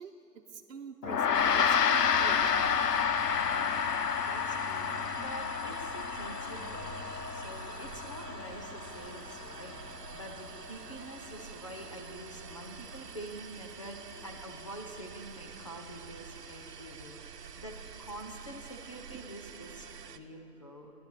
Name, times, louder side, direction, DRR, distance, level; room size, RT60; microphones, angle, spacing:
voice 1, 0.0-2.8, right 5 dB, 55° right, 2 dB, 1.1 m, -46 dB
Gong, 1.0-10.6, left 7 dB, 90° left, 0.8 m, -30 dB
sound 1, 1.3-20.2, right 6 dB, 85° right, 1.0 m, -47 dB
voice 2, 3.4-7.0 7.3-9.8 10.1-20.9, right 1 dB, 20° left, 1 dB, 0.7 m, -46 dB
17.5 x 11.0 x 6.7 m, 3.0 s
hypercardioid pair, 175°, 47 cm